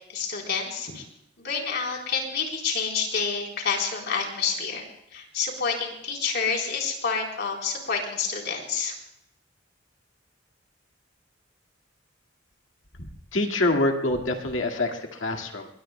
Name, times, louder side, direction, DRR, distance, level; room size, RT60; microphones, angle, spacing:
voice 1, 0.1-1.0 1.4-4.8 5.1-9.0, left 5 dB, 60° left, 0 dB, 3.9 m, -28 dB
voice 2, 13.0-15.7, left 2 dB, 85° left, 3 dB, 2.0 m, -26 dB
22.5 x 22.0 x 2.2 m, 0.76 s
head